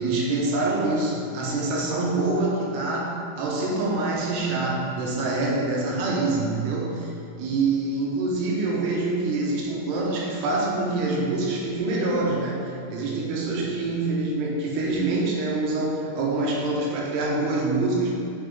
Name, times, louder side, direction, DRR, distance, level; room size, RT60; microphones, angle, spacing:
voice 1, 0.0-7.1 7.4-18.1, right 2 dB, 90° right, -3 dB, 3.1 m, -25 dB
7.8 x 5.1 x 3.6 m, 2.8 s
omnidirectional pair, 4.6 m